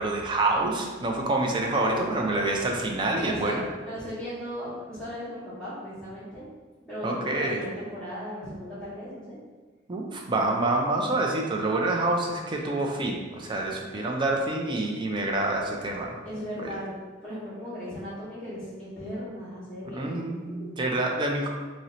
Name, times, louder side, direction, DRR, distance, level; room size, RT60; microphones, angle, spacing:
voice 1, 0.0-3.6 7.0-7.6 9.9-16.2 16.6-16.7 19.9-21.5, right 2 dB, 25° right, 0 dB, 0.4 m, -27 dB
voice 2, 1.7-2.2 3.1-3.6 3.8-6.5 6.9-9.4 16.2-16.9 17.2-20.2 20.5-20.8, equal, 5° left, -14 dB, 0.9 m, -37 dB
2.8 x 2.0 x 3.7 m, 1.4 s
head